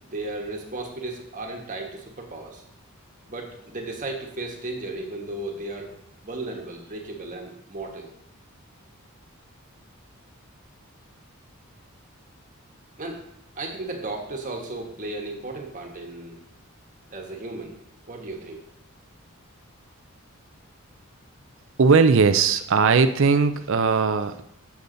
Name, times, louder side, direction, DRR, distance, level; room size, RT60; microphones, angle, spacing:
voice 1, 0.0-2.6 3.2-5.9 6.2-8.1 13.0-13.2 13.6-16.4 17.1-17.8 18.1-18.7, right 2 dB, 35° right, 1 dB, 1.3 m, -35 dB
voice 2, 21.8-24.4, right 5 dB, 60° right, 10 dB, 0.5 m, -19 dB
8.3 x 7.0 x 3.9 m, 0.74 s
head